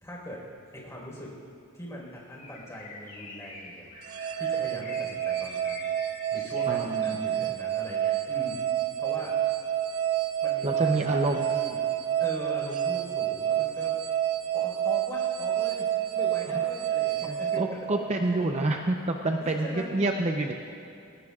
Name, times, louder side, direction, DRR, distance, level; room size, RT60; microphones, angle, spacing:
voice 1, 0.0-0.4 0.7-1.3 1.7-3.9 4.4-5.8 6.3-8.6 9.0-9.4 10.4-11.8 12.2-14.0 14.5-15.9 16.1-17.9 18.3-18.4 19.4-19.9, equal, 15° left, -3 dB, 4.3 m, -41 dB
Bird, 2.3-7.2, left 2 dB, 40° left, 2.7 m, -45 dB
sound 1, 4.0-18.4, right 11 dB, 90° right, 0.8 m, -29 dB
voice 2, 6.7-7.5 10.6-11.6 17.2-20.5, right 2 dB, 30° right, 3 dB, 0.6 m, -28 dB
22.5 x 19.0 x 2.4 m, 2.7 s
head